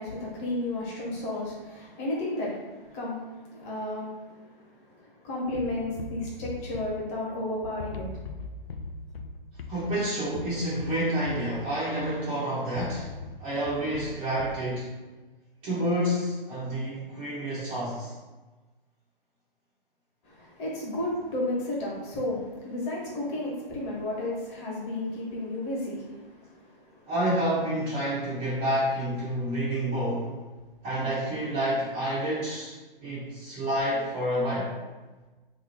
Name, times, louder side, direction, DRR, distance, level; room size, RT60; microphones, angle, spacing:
voice 1, 0.0-8.2 20.2-27.1, left 1 dB, 30° left, -5 dB, 1.2 m, -33 dB
sound 1, 5.5-7.5 7.8-12.3 12.7-14.7, left 4 dB, 80° left, 0.5 m, -41 dB
voice 2, 9.7-13.1 13.4-14.9 15.6-18.1 27.1-30.3 30.8-32.8 33.0-34.7, right 1 dB, 15° right, -9 dB, 0.6 m, -29 dB
2.9 x 2.3 x 4.0 m, 1.2 s
hypercardioid pair, 140°, 29 cm